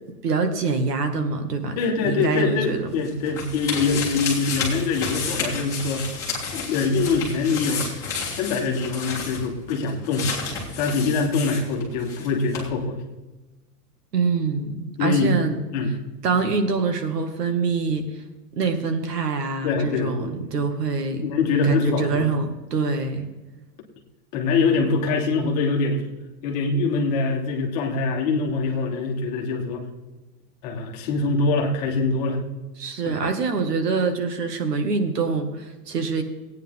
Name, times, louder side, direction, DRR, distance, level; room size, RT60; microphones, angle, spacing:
voice 1, 0.2-2.9 14.1-15.6 16.2-18.0 18.6-21.2 21.6-23.3 32.8-36.2, right 4 dB, 85° right, 6 dB, 2.2 m, -25 dB
voice 2, 1.7-6.1 6.5-7.9 8.3-10.3 10.8-13.0 15.0-15.3 15.7-16.0 19.6-20.3 21.2-22.3 24.3-26.1 26.4-29.9 30.6-32.4 33.0-33.2, left 4 dB, 25° left, 0 dB, 1.5 m, -24 dB
sound 1, 2.6-12.3 12.5-12.6, left 5 dB, 5° left, 1.9 m, -31 dB
17.0 x 9.3 x 3.8 m, 1.1 s
supercardioid pair, 180°, 47 cm